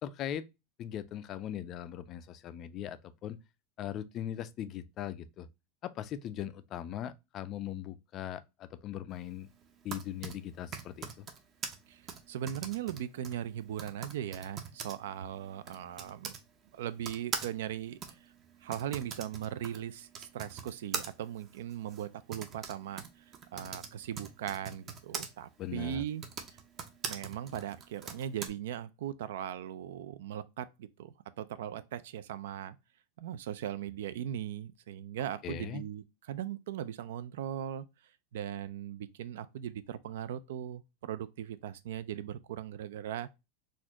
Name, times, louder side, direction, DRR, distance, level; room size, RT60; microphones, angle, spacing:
voice 1, 0.0-0.4 0.8-3.4 3.8-5.5 5.8-9.5 9.8-11.3 25.6-26.0 35.4-35.8, left 10 dB, 35° left, 0.3 m, -40 dB
Typing, 9.6-16.4 17.0-25.3 26.1-28.5, right 6 dB, 30° right, 0.6 m, -43 dB
voice 2, 11.9-16.3 16.7-18.2 18.6-26.2 27.1-32.8 33.2-37.9 38.3-43.3, right 10 dB, 80° right, 0.4 m, -39 dB
4.1 x 2.4 x 2.8 m
supercardioid pair, 150°, 0 cm